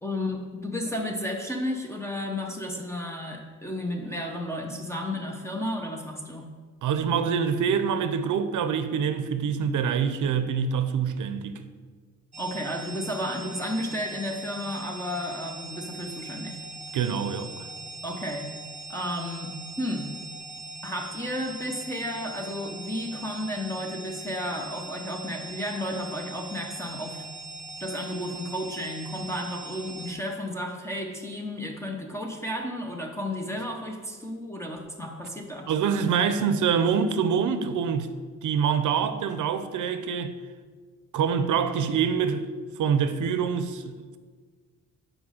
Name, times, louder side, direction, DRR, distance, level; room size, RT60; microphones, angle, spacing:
voice 1, 0.0-6.5 12.4-16.6 18.0-18.5 18.9-20.1 20.8-27.2 27.8-35.7, left 1 dB, 10° left, 0.8 m, -33 dB
voice 2, 6.8-11.6 16.9-17.7 35.7-38.1 38.4-40.4 41.1-42.5 42.8-44.2, right 7 dB, 80° right, 0.6 m, -25 dB
sound 1, 12.3-30.1, right 2 dB, 25° right, 0.9 m, -41 dB
6.1 x 5.1 x 6.4 m
wide cardioid pair, 130°, 30 cm